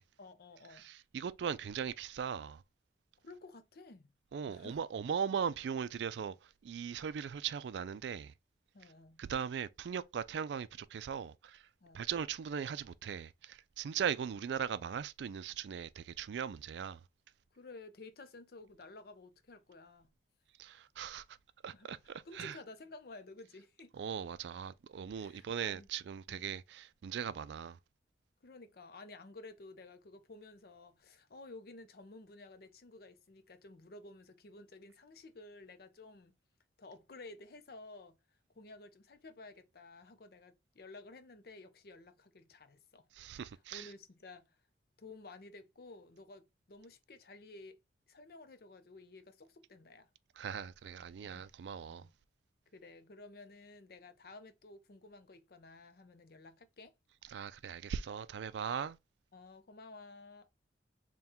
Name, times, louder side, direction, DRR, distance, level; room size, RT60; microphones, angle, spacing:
voice 1, 0.2-0.9 3.2-4.1 4.5-4.8 8.7-9.2 11.8-12.0 13.9-14.1 17.5-20.1 21.7-21.9 22.2-23.9 25.1-25.9 26.3-26.5 28.4-36.4 36.8-38.2 38.6-43.1 43.3-44.6 45.0-47.8 48.1-50.1 51.2-51.5 51.9-52.1 52.7-56.9 58.8-58.9 59.3-60.5, left 3 dB, 55° left, 0.5 m, -53 dB
voice 2, 0.8-2.6 4.3-8.3 9.2-11.7 11.9-17.0 20.6-21.2 21.6-22.5 24.0-27.8 43.1-43.9 50.4-52.1 57.3-59.0, right 7 dB, 75° right, 0.3 m, -39 dB
3.6 x 2.2 x 4.2 m
head